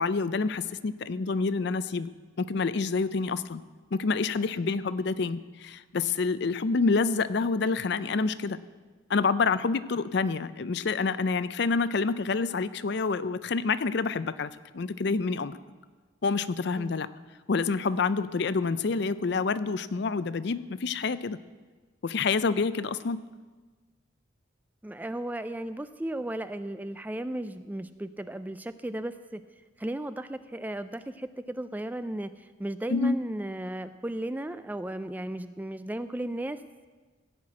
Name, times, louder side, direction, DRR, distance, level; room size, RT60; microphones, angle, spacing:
voice 1, 0.0-2.1 2.4-3.6 3.9-8.6 9.1-15.6 16.2-17.1 17.5-21.4 22.0-23.2 32.9-33.2, left 4 dB, 55° left, 15 dB, 0.5 m, -27 dB
voice 2, 24.8-29.4 29.8-36.6, right 1 dB, 10° right, 12 dB, 0.3 m, -35 dB
15.5 x 6.0 x 8.5 m, 1.4 s
head